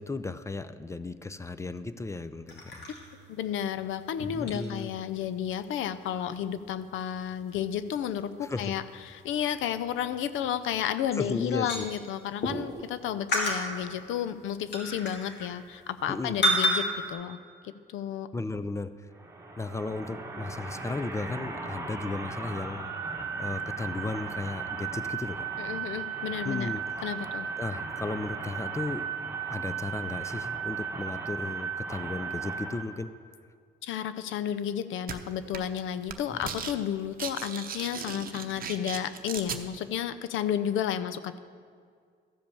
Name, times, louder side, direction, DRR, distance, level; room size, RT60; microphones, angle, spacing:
voice 1, 0.0-2.9 4.3-4.9 8.4-8.7 11.1-11.9 16.1-16.4 18.3-18.9 19.6-22.9 23.4-25.5 26.4-26.8 27.6-29.1 29.5-33.1 36.3-36.6, left 3 dB, 15° left, 13 dB, 0.4 m, -35 dB
sound 1, 2.5-12.8 13.3-16.1 16.4-17.1, equal, 60° left, 2.2 m, -34 dB
voice 2, 3.3-18.3 25.6-26.7 27.0-27.5 33.8-41.4, left 9 dB, 85° left, 14 dB, 0.5 m, -32 dB
sound 2, 19.1-32.8, right 6 dB, 15° right, 1.4 m, -36 dB
sound 3, 35.1-35.2 35.5-35.8 36.1-36.7 37.0-39.6, right 7 dB, 45° right, 0.8 m, -37 dB
13.5 x 5.1 x 7.0 m, 2.1 s
cardioid pair, 90°, 20 cm